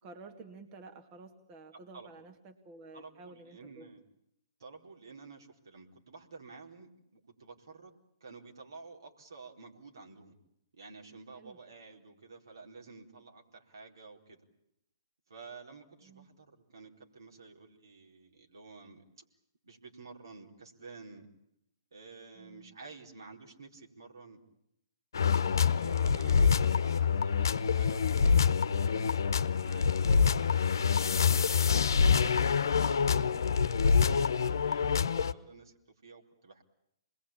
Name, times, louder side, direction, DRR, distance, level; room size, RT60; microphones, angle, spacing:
voice 1, 0.0-3.9 11.3-11.6 16.0-16.3 22.3-22.7, right 3 dB, 35° right, 5 dB, 2.2 m, -52 dB
voice 2, 1.7-2.2 2.9-4.0 4.6-10.4 10.7-14.4 15.3-19.2 19.6-21.3 21.9-24.4 25.6-30.6 31.3-33.2 33.5-35.7 36.0-36.6, right 4 dB, 75° right, 1 dB, 4.3 m, -51 dB
sound 1, 25.1-35.3, left 6 dB, 70° left, 0.9 m, -26 dB
27.5 x 21.0 x 8.7 m, 0.79 s
figure-of-eight pair, 120°, 2 cm